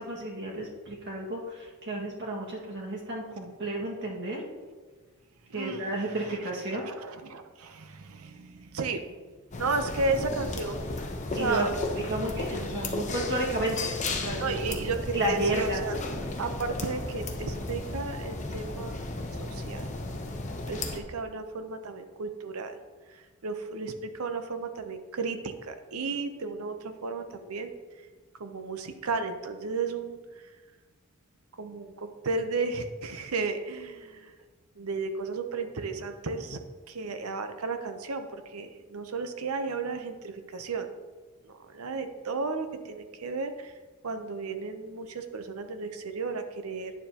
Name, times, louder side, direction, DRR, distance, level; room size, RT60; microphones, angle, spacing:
voice 1, 0.0-4.4 5.5-6.9 11.3-14.8 15.1-15.9, right 1 dB, 55° right, -3 dB, 1.8 m, -32 dB
voice 2, 5.5-5.9 6.8-9.1 9.5-10.9 11.4-11.7 14.4-15.9 16.4-19.0 19.4-19.9 20.7-22.8 23.1-27.7 28.4-30.5 31.6-34.3 34.8-36.6 36.9-40.9 41.4-43.7 44.0-46.9, right 4 dB, 80° right, 7 dB, 0.7 m, -34 dB
sound 1, 9.5-21.0, left 2 dB, 35° left, 0.8 m, -34 dB
9.6 x 7.0 x 2.9 m, 1.4 s
head